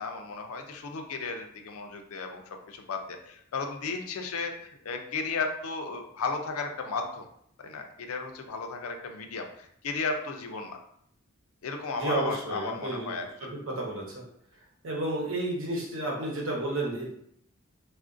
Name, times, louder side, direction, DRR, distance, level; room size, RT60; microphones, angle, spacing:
voice 1, 0.0-7.2 7.6-10.8 11.6-13.5, left 4 dB, 80° left, 5 dB, 0.5 m, -34 dB
voice 2, 11.9-13.1 13.7-14.2 14.8-17.1, right 2 dB, 70° right, -2 dB, 0.9 m, -31 dB
3.5 x 2.4 x 2.5 m, 0.70 s
head